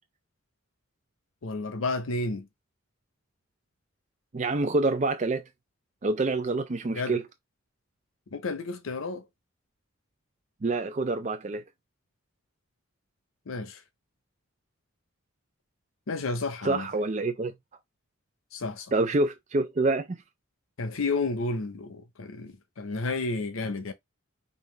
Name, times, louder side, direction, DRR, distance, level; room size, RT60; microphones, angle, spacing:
voice 1, 1.4-2.5 6.9-7.2 8.3-9.2 13.5-13.8 16.1-16.9 18.5-18.9 20.8-23.9, left 3 dB, 85° left, 0.7 m, -31 dB
voice 2, 4.3-5.5 6.0-7.2 10.6-11.6 16.6-17.5 18.9-20.2, right 2 dB, 35° right, 0.4 m, -27 dB
5.4 x 2.5 x 3.2 m
head